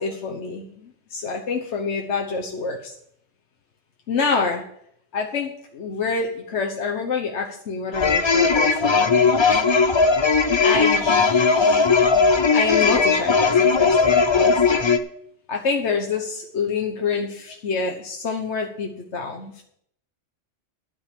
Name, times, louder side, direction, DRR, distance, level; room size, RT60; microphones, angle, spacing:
voice 1, 0.0-2.9 4.1-4.6 5.1-9.4 10.6-14.6 15.5-19.6, left 4 dB, 70° left, 2 dB, 1.4 m, -27 dB
sound 1, 7.9-15.0, left 4 dB, 30° left, 0.5 m, -18 dB
12.0 x 5.3 x 8.3 m, 0.69 s
omnidirectional pair, 1.2 m